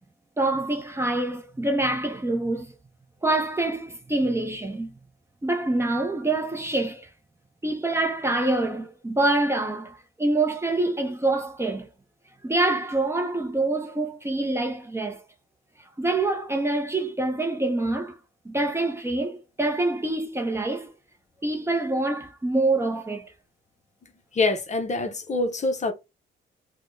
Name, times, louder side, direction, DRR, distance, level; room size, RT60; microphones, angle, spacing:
voice 1, 0.4-2.7 3.2-4.9 5.4-7.1 7.6-11.9 12.4-15.2 16.0-18.2 18.4-20.9 21.4-23.3, right 2 dB, 15° right, 0.6 m, -26 dB
voice 2, 24.3-25.9, left 3 dB, 35° left, 0.6 m, -25 dB
4.2 x 2.1 x 2.5 m
cardioid pair, 90°, 20 cm